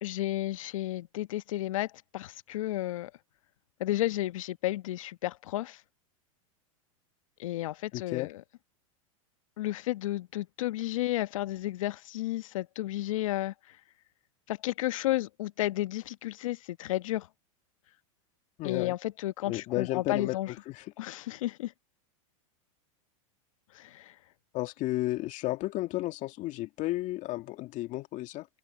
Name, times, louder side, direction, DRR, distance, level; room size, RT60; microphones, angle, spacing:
voice 1, 0.0-3.1 3.8-5.8 7.4-8.4 9.6-13.5 14.5-17.3 18.6-20.5 21.0-21.7 23.7-24.1, left 15 dB, 70° left, 1.1 m, -32 dB
voice 2, 7.9-8.3 18.6-19.0 19.4-20.9 24.5-28.5, left 18 dB, 45° left, 2.1 m, -33 dB
hypercardioid pair, 105°, 17 cm